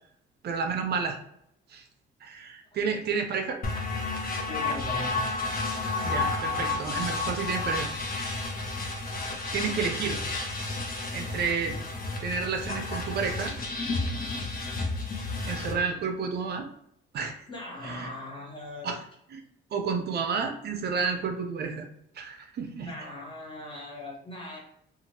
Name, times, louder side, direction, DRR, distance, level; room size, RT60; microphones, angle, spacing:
voice 1, 0.4-1.2 1.7-1.8 2.2-3.6 6.0-7.9 9.5-10.2 11.1-11.8 12.2-13.5 15.4-16.7 17.1-17.5 17.8-18.1 18.8-19.0 19.3-19.4 19.7-21.9 22.1-22.9, right 5 dB, 55° right, 4 dB, 0.5 m, -30 dB
sound 1, 3.6-15.7, left 3 dB, 45° left, 0.7 m, -31 dB
voice 2, 4.5-5.3 14.0-14.5 17.5-18.9 22.8-24.6, left 2 dB, 25° left, -3 dB, 1.2 m, -40 dB
2.9 x 2.4 x 2.8 m, 0.74 s
cardioid pair, 90°, 20 cm